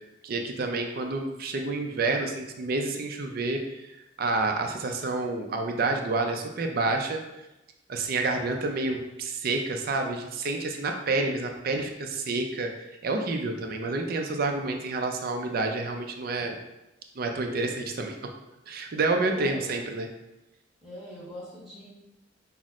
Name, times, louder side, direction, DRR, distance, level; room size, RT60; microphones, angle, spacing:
voice 1, 0.2-3.9 4.2-7.2 7.9-16.6 17.2-18.2 18.7-20.1, right 3 dB, 55° right, 3 dB, 0.4 m, -29 dB
voice 2, 19.2-19.7 20.8-21.9, left 1 dB, ahead, -8 dB, 1.2 m, -41 dB
5.7 x 2.0 x 2.4 m, 0.95 s
head